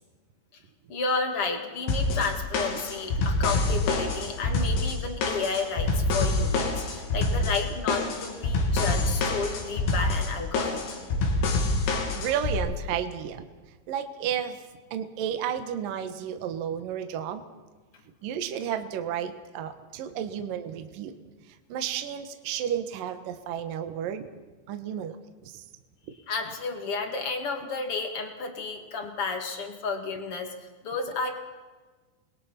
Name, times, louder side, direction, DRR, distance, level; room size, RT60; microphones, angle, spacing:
voice 1, 0.9-11.1 26.3-31.3, left 4 dB, 45° left, 4 dB, 2.1 m, -32 dB
sound 1, 1.9-12.6, left 2 dB, 90° left, 5.4 m, -26 dB
voice 2, 12.1-13.5 13.9-14.6 14.9-17.4 18.2-21.2 21.7-24.3 24.7-25.2 25.4-25.6, right 9 dB, 65° right, 7 dB, 2.5 m, -32 dB
29.0 x 21.0 x 5.9 m, 1.3 s
omnidirectional pair, 5.3 m